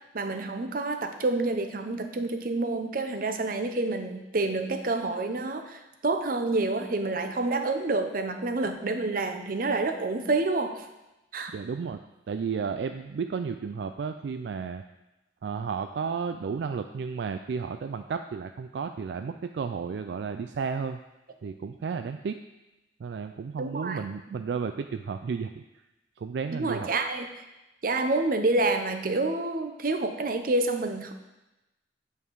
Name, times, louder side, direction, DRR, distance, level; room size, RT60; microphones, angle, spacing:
voice 1, 0.1-10.9 11.3-11.5 23.6-24.0 26.5-27.4 27.8-31.1, right 2 dB, 50° right, 7 dB, 0.7 m, -28 dB
voice 2, 11.5-12.0 12.3-14.8 15.4-21.0 21.4-22.4 23.0-25.6 26.2-26.9, right 5 dB, 70° right, 8 dB, 0.3 m, -32 dB
8.6 x 5.6 x 4.7 m, 0.99 s
head